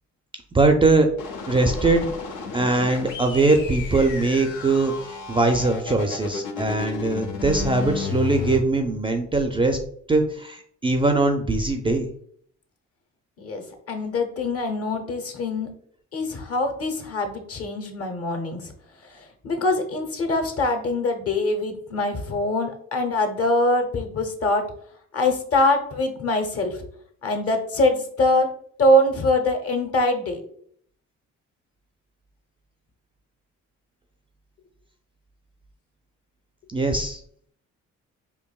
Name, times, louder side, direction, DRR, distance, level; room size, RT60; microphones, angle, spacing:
voice 1, 0.5-1.1 1.5-2.1 2.5-9.8 10.1-12.1 36.7-37.2, right 2 dB, 20° right, 5 dB, 0.3 m, -21 dB
sound 1, 1.2-8.6, left 6 dB, 90° left, 0.7 m, -33 dB
voice 2, 13.4-15.7 16.1-18.7 19.1-24.6 25.1-26.8 27.2-28.5 28.8-30.4, left 1 dB, 50° left, 5 dB, 0.8 m, -23 dB
4.7 x 2.6 x 2.3 m, 0.62 s
cardioid pair, 90°, 30 cm